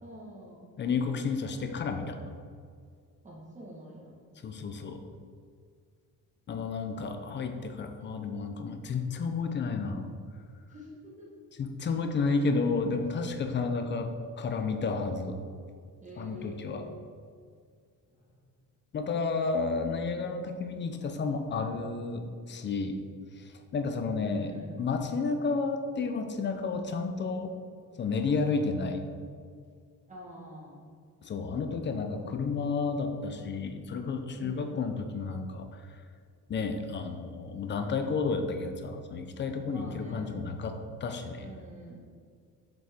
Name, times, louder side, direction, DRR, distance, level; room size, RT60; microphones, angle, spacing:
voice 1, 0.0-0.6 3.2-4.1 10.7-11.3 16.0-16.8 18.2-18.3 24.2-24.7 30.1-30.8 34.4-34.7 39.6-40.3 41.4-42.0, right 1 dB, 20° right, -4 dB, 1.4 m, -47 dB
voice 2, 0.8-2.2 4.4-5.0 6.5-10.1 11.6-14.1 14.4-15.4 16.2-16.8 18.9-23.0 23.4-27.5 28.0-29.0 31.2-35.9 36.5-41.5, left 4 dB, 35° left, 6 dB, 0.5 m, -31 dB
7.5 x 5.2 x 3.5 m, 2.1 s
cardioid pair, 160°, 34 cm